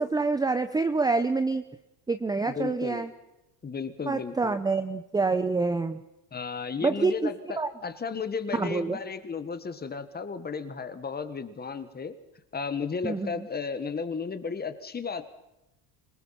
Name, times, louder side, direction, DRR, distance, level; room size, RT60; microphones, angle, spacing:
voice 1, 0.0-1.6 2.1-3.1 4.1-6.0 6.8-7.3 7.6-7.7 8.5-9.0 13.0-13.5, right 3 dB, 10° right, 10 dB, 0.6 m, -27 dB
voice 2, 2.5-3.0 3.6-4.6 6.3-12.2 12.5-15.2, left 5 dB, 20° left, 10 dB, 1.5 m, -34 dB
26.0 x 18.5 x 5.8 m, 0.91 s
cardioid pair, 135°, 48 cm